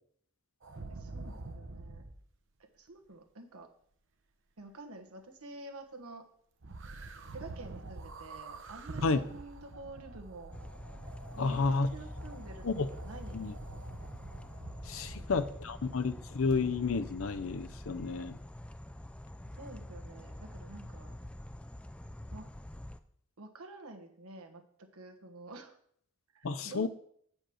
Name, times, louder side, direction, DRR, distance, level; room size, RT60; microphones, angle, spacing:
sound 1, 0.6-2.2 6.6-15.9 16.5-16.6, right 3 dB, 60° right, 0.8 m, -47 dB
voice 1, 0.9-2.1 2.6-3.7 4.6-6.2 7.3-10.5 11.3-13.6 15.1-15.5 15.8-16.4 19.6-21.2 22.3-22.5 23.4-25.8 26.3-26.9, right 2 dB, 85° right, 4 dB, 1.4 m, -49 dB
sound 2, 10.5-23.0, left 1 dB, 5° left, 0.3 m, -46 dB
voice 2, 11.4-11.9 12.6-12.9 13.3-13.5 14.9-18.4 26.4-26.9, left 4 dB, 65° left, 12 dB, 0.6 m, -31 dB
8.7 x 5.2 x 6.3 m, 0.64 s
head